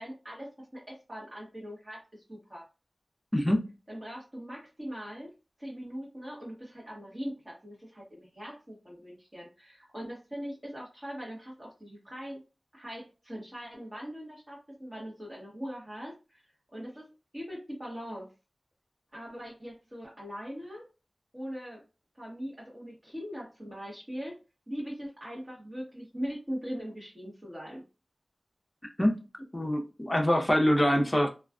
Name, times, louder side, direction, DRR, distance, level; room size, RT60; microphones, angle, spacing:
voice 1, 0.0-2.7 3.9-5.3 5.6-12.4 12.7-16.5 16.7-17.1 17.3-18.3 19.1-20.9 21.3-21.8 22.1-24.4 24.7-27.8, equal, 25° right, 1.0 m, -41 dB
voice 2, 3.3-3.7 29.0-29.2 29.5-31.3, equal, 25° left, 0.6 m, -24 dB
2.3 x 2.3 x 2.3 m
cardioid pair, 40°, 0 cm